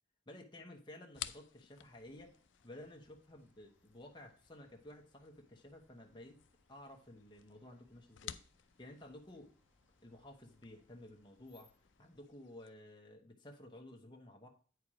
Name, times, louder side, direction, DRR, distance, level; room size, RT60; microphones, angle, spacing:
voice 1, 0.3-2.4 2.6-6.4 6.7-8.4 8.8-9.5 10.0-11.7 12.0-14.5, left 1 dB, 25° left, 1 dB, 1.0 m, -54 dB
sound 1, 1.1-12.7, left 12 dB, 85° left, 0.5 m, -55 dB
sound 2, 1.8-12.2, left 2 dB, 10° right, 2.0 m, -75 dB
8.7 x 4.7 x 4.8 m, 0.40 s
head